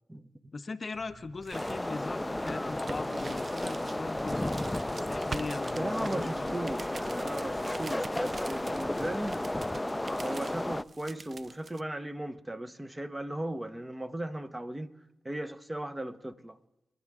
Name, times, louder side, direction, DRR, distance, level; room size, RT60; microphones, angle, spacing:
voice 1, 0.5-6.7, left 4 dB, 50° left, 0.7 m, -40 dB
sound 1, 0.9-11.8, right 4 dB, 50° right, 0.5 m, -46 dB
sound 2, 1.5-10.8, left 1 dB, 15° left, 0.4 m, -33 dB
voice 2, 5.8-9.4 10.2-14.9 15.2-16.6, right 1 dB, 20° right, 1.1 m, -37 dB
29.5 x 10.5 x 3.7 m
supercardioid pair, 45°, 0 cm